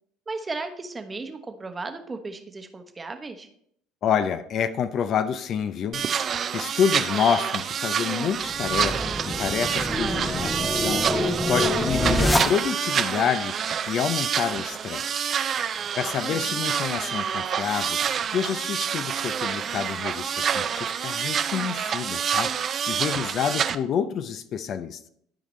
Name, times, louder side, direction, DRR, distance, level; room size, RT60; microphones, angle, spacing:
voice 1, 0.3-3.5 6.9-7.0 16.1-16.6, right 3 dB, 25° right, 1.0 m, -36 dB
voice 2, 4.0-15.3 16.0-18.0 18.3-22.5 22.9-25.1, left 8 dB, 50° left, 0.5 m, -28 dB
sound 1, 5.9-23.7, right 8 dB, 45° right, 0.5 m, -27 dB
sound 2, 8.4-13.0, left 1 dB, 5° left, 0.8 m, -26 dB
12.5 x 5.0 x 3.2 m
hypercardioid pair, 65°, 0 cm